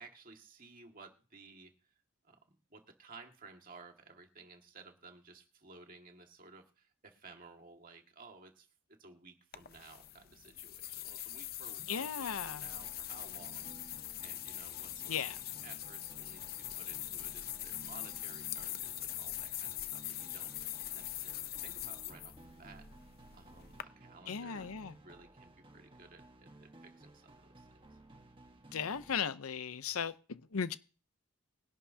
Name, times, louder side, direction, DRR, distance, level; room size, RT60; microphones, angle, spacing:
voice 1, 0.0-1.9 2.2-15.4 15.6-22.8 23.3-28.0 29.9-30.1, right 4 dB, 40° right, 1.9 m, -56 dB
sound 1, 9.5-23.8, left 13 dB, 45° left, 0.6 m, -43 dB
voice 2, 11.9-12.6 15.1-15.4 24.3-24.9 28.7-30.8, left 7 dB, 80° left, 0.7 m, -37 dB
sound 2, 12.7-29.2, right 2 dB, 25° right, 1.4 m, -57 dB
20.5 x 11.5 x 2.8 m
head